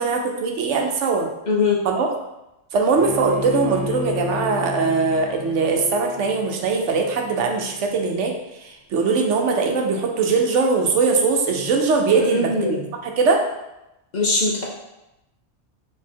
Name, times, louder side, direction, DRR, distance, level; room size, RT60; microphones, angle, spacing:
voice 1, 0.0-1.3 1.8-2.1 2.7-8.3 8.6-13.4, right 4 dB, 85° right, 2 dB, 1.0 m, -21 dB
voice 2, 1.5-1.8 12.3-12.8 14.1-14.7, left 3 dB, 50° left, -2 dB, 0.6 m, -21 dB
Bowed string instrument, 3.0-8.1, left 5 dB, 85° left, 0.9 m, -33 dB
4.2 x 2.7 x 4.4 m, 0.92 s
omnidirectional pair, 1.2 m